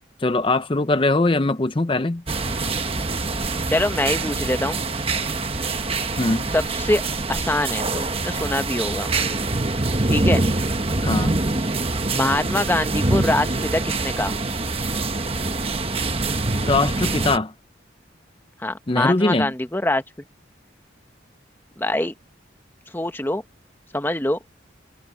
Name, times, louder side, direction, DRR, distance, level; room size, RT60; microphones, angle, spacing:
voice 1, 0.2-2.2 6.2-6.5 11.0-11.3 16.7-17.5 18.9-19.5, left 2 dB, 25° left, 0.6 m, -21 dB
sound 1, 2.3-17.4, right 2 dB, 30° right, 1.1 m, -24 dB
voice 2, 3.7-4.8 6.5-7.0 7.3-9.1 10.1-10.4 12.1-14.4 18.6-20.0 21.8-22.1 22.9-23.4 23.9-24.4, left 1 dB, 10° left, 1.0 m, -24 dB
head